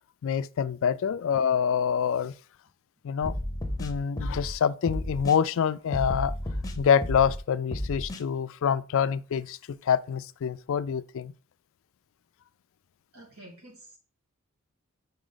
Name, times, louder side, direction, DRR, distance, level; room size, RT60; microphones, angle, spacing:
voice 1, 0.2-2.3 3.0-3.3 3.8-6.3 6.8-11.3, left 7 dB, 65° left, 0.4 m, -26 dB
sound 1, 3.2-4.5 4.9-5.4 5.9-7.4 7.7-8.2, left 1 dB, 15° left, 0.7 m, -32 dB
voice 2, 13.1-14.0, right 1 dB, 75° right, 2.2 m, -49 dB
5.3 x 4.9 x 4.0 m
head